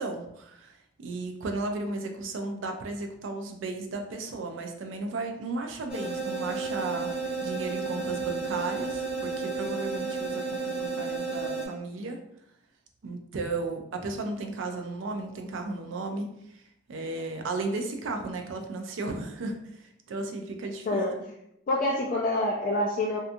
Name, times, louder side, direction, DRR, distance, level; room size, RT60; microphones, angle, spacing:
voice 1, 0.0-7.1 7.4-12.2 13.0-16.3 16.9-21.0, right 3 dB, 70° right, 4 dB, 0.4 m, -34 dB
sound 1, 5.9-11.7, right 4 dB, 5° right, 0.8 m, -32 dB
voice 2, 20.9-21.2 21.7-23.2, left 1 dB, 45° left, -3 dB, 0.3 m, -26 dB
2.8 x 2.3 x 2.5 m, 0.78 s
head